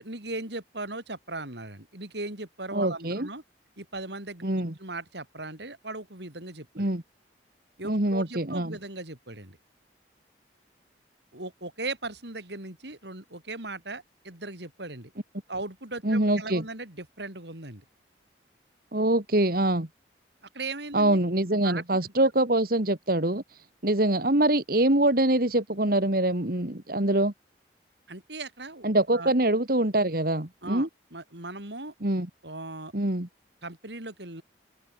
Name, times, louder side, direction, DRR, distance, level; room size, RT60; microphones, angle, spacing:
voice 1, 0.0-3.4 3.8-4.5 4.8-6.8 7.8-9.6 11.3-15.1 15.5-17.8 20.5-21.2 21.6-21.8 28.1-29.3 30.6-31.9 32.4-32.9 33.6-34.4, right 2 dB, 70° right, 5.1 m, -38 dB
voice 2, 2.7-3.3 4.4-4.7 6.8-7.0 7.8-8.8 16.0-16.6 18.9-19.9 20.9-27.3 28.8-30.9 32.0-32.3 32.9-33.3, right 1 dB, 50° right, 2.1 m, -24 dB
open air
head